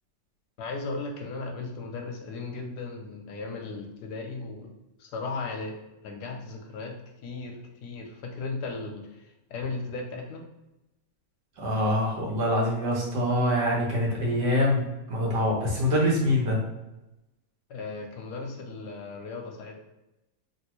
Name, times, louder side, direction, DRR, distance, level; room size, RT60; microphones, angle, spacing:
voice 1, 0.6-4.7 5.0-5.7 6.0-10.4 17.7-19.7, left 3 dB, 70° left, 2 dB, 1.1 m, -36 dB
voice 2, 11.6-16.6, left 1 dB, 65° right, -3 dB, 1.5 m, -25 dB
3.2 x 2.6 x 3.0 m, 0.95 s
omnidirectional pair, 2.0 m